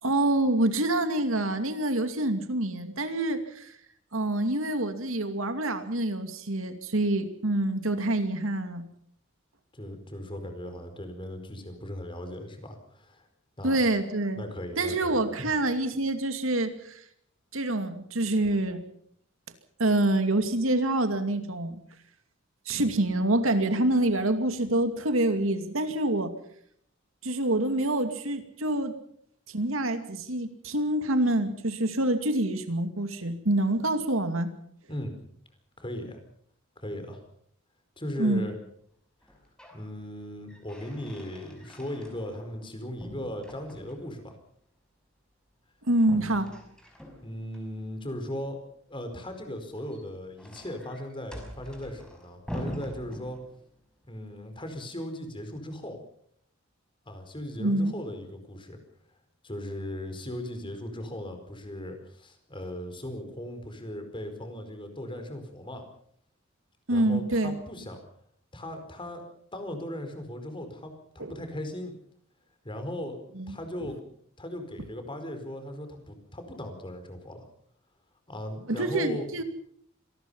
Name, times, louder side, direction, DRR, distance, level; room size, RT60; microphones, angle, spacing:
voice 1, 0.0-3.7 4.1-8.9 13.6-14.4 14.8-17.0 17.5-18.8 19.8-21.8 22.7-26.3 27.2-28.9 29.5-34.5 38.2-38.4 45.9-46.5 57.6-57.9 66.9-67.6 71.2-71.3 73.4-73.6 78.7-79.4, right 1 dB, 75° right, 8 dB, 2.5 m, -26 dB
voice 2, 9.7-13.2 13.6-13.8 14.4-15.6 34.9-35.1 35.8-36.2 36.8-37.2 38.0-38.5 39.3-39.4 39.7-44.3 47.2-48.6 48.9-53.4 54.1-56.0 57.1-58.8 59.4-65.8 66.9-68.0 68.5-69.2 69.5-71.9 72.6-73.2 73.5-74.0 74.4-77.5 78.3-79.3, left 1 dB, 25° left, 7 dB, 4.7 m, -38 dB
sound 1, 39.2-39.9 40.2-42.7 43.0-44.2 46.0-47.6 49.6-53.8, equal, 5° left, 5.7 m, -43 dB
26.5 x 19.5 x 5.6 m, 0.67 s
head